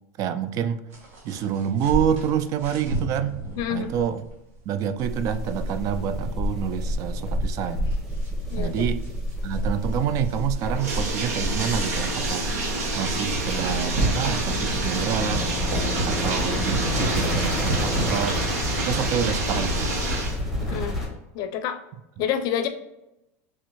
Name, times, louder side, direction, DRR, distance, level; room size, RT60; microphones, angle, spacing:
voice 1, 0.2-0.8 1.2-3.4 3.7-4.2 4.7-7.9 8.6-9.0 9.4-12.5 12.9-15.5 16.1-18.4 18.8-19.9 20.6-20.9, right 9 dB, 45° right, 12 dB, 0.3 m, -27 dB
sound 1, 0.9-14.9 15.3-18.1, right 2 dB, 70° right, 1.2 m, -34 dB
voice 2, 3.6-3.9 8.5-8.9 20.7-21.0 21.3-21.8 22.2-22.7, left 8 dB, 50° left, 8 dB, 0.5 m, -28 dB
sound 2, 5.0-21.1, left 1 dB, 5° right, 1.2 m, -29 dB
Bathtub (filling or washing), 10.6-20.4, right 2 dB, 85° right, 0.9 m, -29 dB
3.5 x 3.3 x 3.0 m, 0.91 s
supercardioid pair, 115°, 8 cm